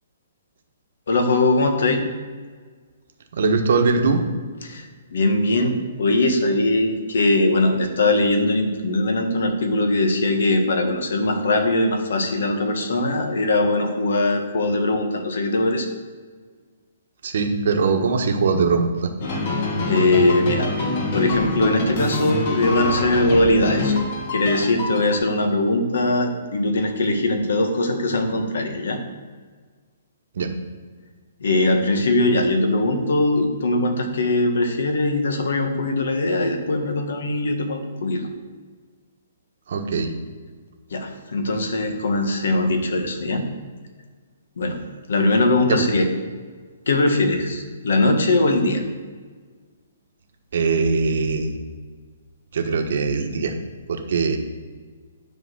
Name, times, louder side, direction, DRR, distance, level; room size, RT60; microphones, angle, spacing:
voice 1, 1.1-2.0 4.6-15.9 19.6-20.7 21.1-23.9 24.3-29.0 31.4-38.3 40.9-43.4 44.6-44.8 45.1-46.1 46.9-48.8, left 2 dB, 65° left, 5 dB, 1.5 m, -21 dB
voice 2, 3.3-4.2 17.2-19.1 30.4-30.5 39.7-40.1 45.7-45.8 50.5-51.6 52.5-53.5 53.9-54.4, right 4 dB, 50° right, 4 dB, 1.2 m, -21 dB
sound 1, 19.2-25.2, left 2 dB, 35° left, 1.3 m, -25 dB
9.9 x 4.6 x 6.4 m, 1.5 s
hypercardioid pair, 175°, 0 cm